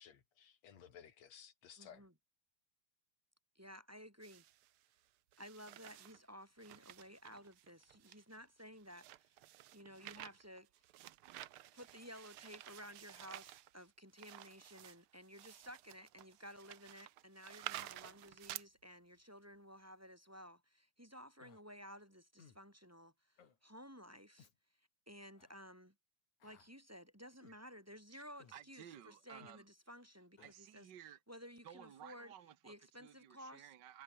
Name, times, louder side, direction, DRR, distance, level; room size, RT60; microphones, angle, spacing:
voice 1, 0.0-2.0, left 8 dB, 65° left, 3.3 m, -58 dB
voice 2, 1.8-2.1 3.6-4.4 5.4-9.1 9.7-10.7 11.7-23.1 23.6-24.5 25.1-25.9 26.4-30.9 31.3-32.3 32.6-33.7, equal, 5° right, 3.6 m, -55 dB
sound 1, 4.2-4.8 5.3-6.2 6.6-18.6, right 14 dB, 75° right, 1.2 m, -52 dB
Human voice, 21.4-21.6 22.4-22.6 23.4-23.6 24.4-24.6 25.4-25.5 26.4-26.7 27.4-27.6 28.4-28.6 29.4-29.6 30.4-30.5, left 7 dB, 80° left, 4.4 m, -63 dB
voice 3, 28.5-29.6 30.4-31.2 31.6-34.0, right 10 dB, 50° right, 1.6 m, -56 dB
omnidirectional pair, 3.3 m